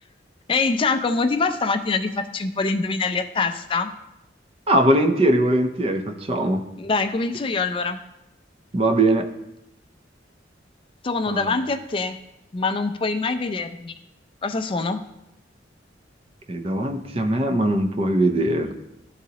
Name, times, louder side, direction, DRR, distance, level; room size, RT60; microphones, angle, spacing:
voice 1, 0.5-3.9 6.8-8.0 11.0-12.2 12.5-14.0 14.4-15.0, left 4 dB, 30° left, 7 dB, 0.4 m, -24 dB
voice 2, 4.7-6.7 8.7-9.3 11.3-11.5 16.5-18.7, right 1 dB, 30° right, 6 dB, 0.5 m, -21 dB
11.5 x 4.0 x 2.8 m, 0.88 s
head